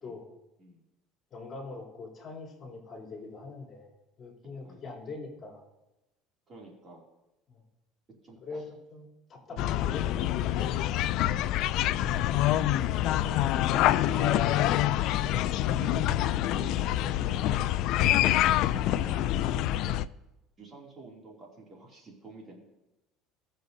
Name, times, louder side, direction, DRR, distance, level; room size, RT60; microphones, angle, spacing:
voice 1, 1.3-3.9 4.2-5.6 7.5-7.6 8.4-10.1 10.3-11.0, left 3 dB, 35° left, -1 dB, 3.2 m, -43 dB
voice 2, 6.5-7.0 8.2-8.6 9.5-9.7 13.1-14.8 15.1-16.2 16.5-18.1 18.8-19.5 19.8-19.9 20.6-22.6, right 3 dB, 30° right, -2 dB, 2.6 m, -47 dB
sound 1, 9.6-20.0, left 13 dB, 60° left, 0.3 m, -26 dB
18.0 x 6.7 x 2.7 m, 0.96 s
supercardioid pair, 115°, 0 cm